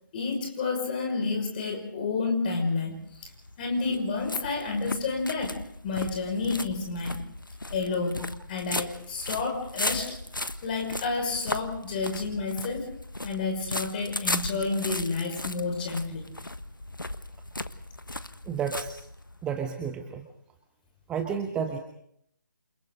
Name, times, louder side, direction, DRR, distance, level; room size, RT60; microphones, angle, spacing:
voice 1, 0.1-3.3 3.6-7.2 7.7-10.2 10.6-12.9 13.2-16.3, left 4 dB, 25° left, 3 dB, 5.7 m, -30 dB
sound 1, 3.0-19.5, left 2 dB, 80° left, 1.4 m, -36 dB
voice 2, 18.4-19.0 19.4-20.3 21.1-21.8, right 7 dB, 10° right, 4 dB, 1.1 m, -31 dB
29.0 x 27.0 x 3.9 m, 0.72 s
figure-of-eight pair, 145°, 11 cm